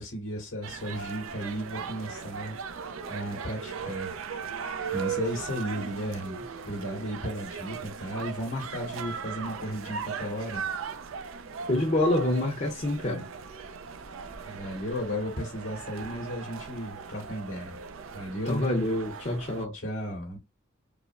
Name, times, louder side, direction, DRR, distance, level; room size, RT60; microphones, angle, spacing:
voice 1, 0.0-2.5 3.1-4.1 4.9-6.4 6.6-10.7 14.5-17.8 18.1-18.6 19.7-20.4, equal, 70° left, 2.3 m, -34 dB
sound 1, 0.6-19.7, right 6 dB, 90° right, 0.5 m, -38 dB
voice 2, 11.7-13.3 18.5-19.7, left 1 dB, 35° left, 0.7 m, -26 dB
4.8 x 2.0 x 2.5 m
head